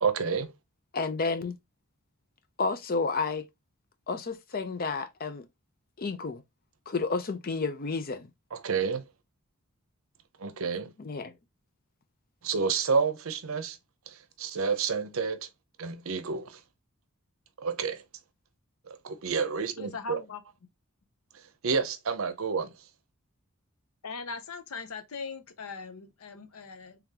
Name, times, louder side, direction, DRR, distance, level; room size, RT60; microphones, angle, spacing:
voice 1, 0.0-0.5 8.5-9.0 10.4-10.9 12.4-13.8 14.4-15.4 15.8-16.5 17.6-18.0 19.0-20.2 21.6-22.7, right 5 dB, 65° right, 0.6 m, -29 dB
voice 2, 0.9-1.6 2.6-3.5 4.1-5.5 6.0-6.4 6.9-8.3 11.0-11.3, left 4 dB, 40° left, 0.5 m, -31 dB
voice 3, 19.8-20.4 24.0-27.0, left 4 dB, 80° left, 0.7 m, -40 dB
3.8 x 3.4 x 2.8 m
head